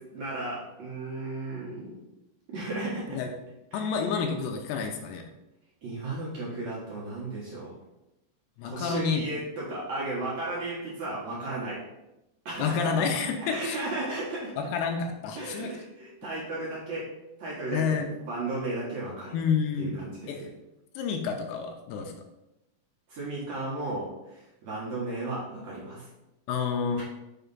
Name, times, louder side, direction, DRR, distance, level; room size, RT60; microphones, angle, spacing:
voice 1, 0.0-2.0 2.5-3.2 3.7-3.9 5.8-7.7 8.6-11.8 12.5-13.0 13.4-14.6 15.4-17.1 17.4-19.3 19.8-20.5 23.1-26.1, right 2 dB, 55° right, -7 dB, 2.2 m, -35 dB
voice 2, 3.7-5.3 8.6-9.3 12.6-13.8 14.6-15.7 17.7-18.1 19.3-20.0 20.3-20.5 21.0-22.1 26.5-27.0, left 6 dB, 85° left, 3 dB, 2.6 m, -29 dB
6.5 x 3.4 x 5.4 m, 0.92 s
omnidirectional pair, 4.9 m